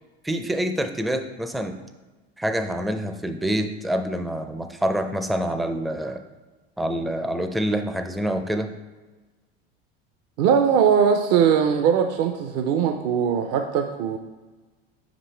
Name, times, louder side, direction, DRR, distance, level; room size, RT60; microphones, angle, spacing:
voice 1, 0.2-1.8 2.4-6.2 6.8-8.7, right 1 dB, ahead, 7 dB, 0.4 m, -26 dB
voice 2, 10.4-14.2, right 7 dB, 55° right, 6 dB, 0.6 m, -20 dB
5.4 x 5.2 x 4.4 m, 1.2 s
hypercardioid pair, 90°, 30 cm